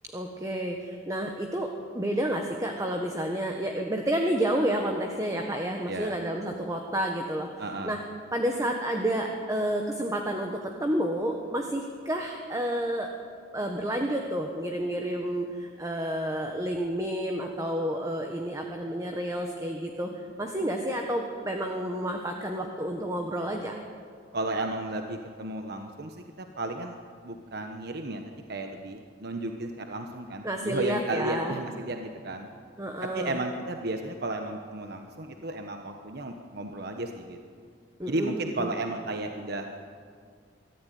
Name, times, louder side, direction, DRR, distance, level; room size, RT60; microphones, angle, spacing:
voice 1, 0.1-7.5 7.8-8.0 8.3-13.1 13.5-20.1 20.4-23.8 30.4-31.6 32.8-33.4 38.0-38.7, right 1 dB, 20° right, 3 dB, 1.4 m, -30 dB
voice 2, 5.9-6.2 7.6-7.9 24.3-27.0 27.2-28.2 28.5-32.5 33.1-37.4 38.1-39.8, right 2 dB, 60° right, 5 dB, 1.2 m, -33 dB
24.0 x 14.0 x 9.4 m, 2.1 s
head